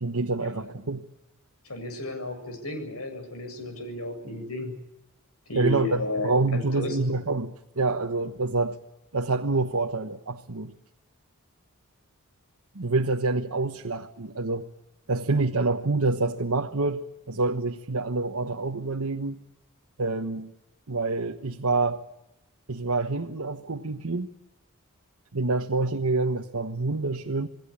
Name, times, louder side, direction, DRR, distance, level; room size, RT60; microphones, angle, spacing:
voice 1, 0.0-1.0 5.5-8.8 9.1-10.7 12.7-14.6 15.1-19.4 20.0-20.5 20.9-22.0 22.7-24.3 25.3-27.5, right 3 dB, 70° right, 2 dB, 1.3 m, -27 dB
voice 2, 0.5-0.9 1.6-4.7 5.5-7.0, left 1 dB, 75° left, 7 dB, 7.5 m, -33 dB
28.5 x 20.0 x 8.6 m, 0.89 s
head